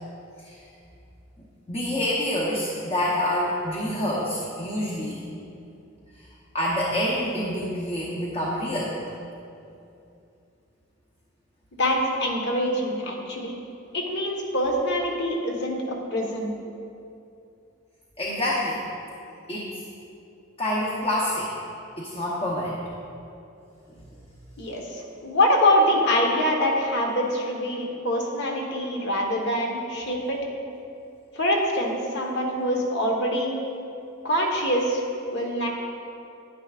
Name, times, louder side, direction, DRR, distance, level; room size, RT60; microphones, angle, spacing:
voice 1, 1.7-5.2 6.5-9.0 18.2-18.8 19.5-19.8 20.6-21.5 22.0-22.8, left 1 dB, 30° left, -5 dB, 0.9 m, -27 dB
voice 2, 11.8-13.5 13.9-16.5 24.6-30.4 31.3-33.6 34.2-35.0 35.3-35.7, equal, 55° left, 0 dB, 1.2 m, -24 dB
10.5 x 10.0 x 2.4 m, 2.7 s
head